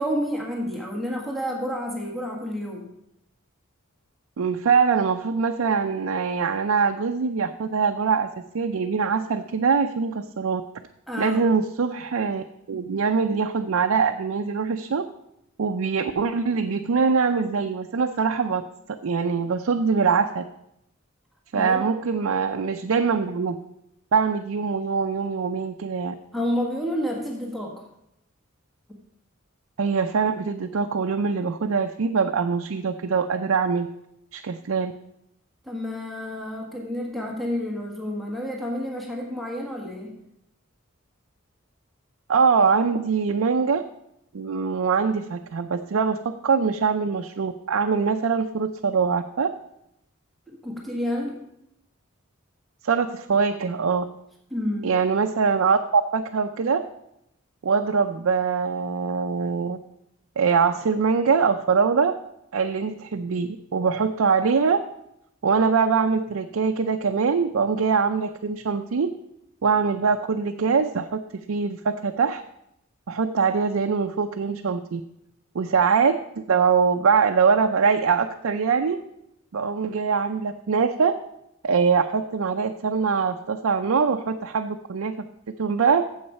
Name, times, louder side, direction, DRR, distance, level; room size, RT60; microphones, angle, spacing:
voice 1, 0.0-2.9 11.1-11.4 21.5-21.9 26.3-27.8 35.6-40.2 50.5-51.5 54.5-54.9, equal, ahead, -1 dB, 1.5 m, -29 dB
voice 2, 4.4-8.3 8.5-10.6 11.2-15.1 15.6-18.6 19.0-20.4 21.5-23.6 24.1-26.1 29.8-33.9 34.3-34.9 42.3-43.8 44.3-49.5 52.8-54.1 54.8-56.8 57.6-59.8 60.4-62.1 62.5-64.8 65.4-69.1 69.6-72.4 73.1-75.0 75.5-79.0 79.5-81.1 81.6-85.3 85.6-86.0, right 5 dB, 90° right, 5 dB, 0.5 m, -23 dB
8.6 x 7.3 x 5.3 m, 0.80 s
head